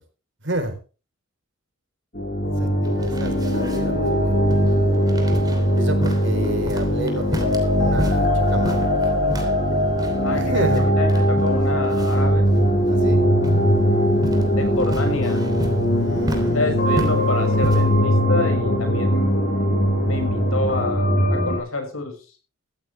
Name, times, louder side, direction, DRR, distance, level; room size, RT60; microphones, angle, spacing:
voice 1, 0.4-0.8 2.4-4.3 5.7-9.1 10.3-10.9 12.9-13.2 16.0-16.6, right 1 dB, 60° right, 7 dB, 4.2 m, -30 dB
sound 1, 2.1-21.6, equal, 45° left, 7.8 m, -20 dB
sound 2, 2.8-18.0, equal, 20° right, 3.2 m, -33 dB
voice 2, 10.2-12.5 14.5-15.5 16.5-19.6 20.1-22.2, left 2 dB, 90° left, 5 dB, 6.3 m, -28 dB
16.0 x 15.0 x 3.4 m, 0.35 s
head